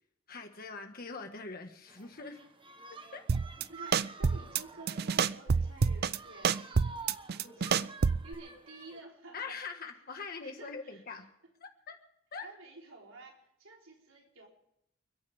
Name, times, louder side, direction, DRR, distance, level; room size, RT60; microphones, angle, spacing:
voice 1, 0.3-2.4 3.1-3.2 7.4-7.9 9.3-11.3 11.6-12.0 12.3-12.5, left 4 dB, 45° left, 4 dB, 1.6 m, -43 dB
sound 1, 1.9-9.0, right 4 dB, 25° right, 1.2 m, -50 dB
sound 2, 3.3-3.6 3.9-4.6 4.9-6.2 6.4-8.3, right 5 dB, 50° right, 0.5 m, -27 dB
voice 2, 3.7-9.6 10.1-11.2 12.4-14.5, right 2 dB, 80° right, 0 dB, 4.3 m, -52 dB
29.5 x 10.5 x 3.6 m, 0.79 s
head